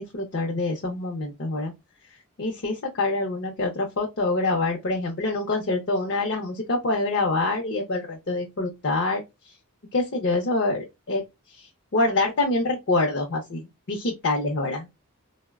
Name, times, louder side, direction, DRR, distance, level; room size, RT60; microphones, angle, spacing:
voice 1, 0.0-1.7 2.4-9.5 9.9-11.2 11.5-14.9, left 2 dB, 50° left, 0.6 m, -26 dB
3.8 x 2.0 x 2.2 m
head